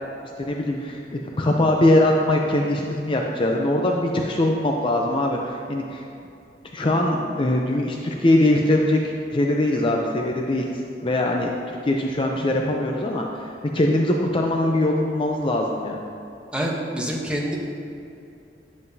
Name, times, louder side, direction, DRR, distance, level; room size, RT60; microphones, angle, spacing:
voice 1, 0.2-6.0 6.7-10.7 11.0-11.5 11.8-13.5 13.7-16.0, left 1 dB, 30° left, 1 dB, 0.5 m, -22 dB
voice 2, 16.5-17.6, equal, 5° right, -2 dB, 0.9 m, -26 dB
9.7 x 7.3 x 2.7 m, 2.6 s
head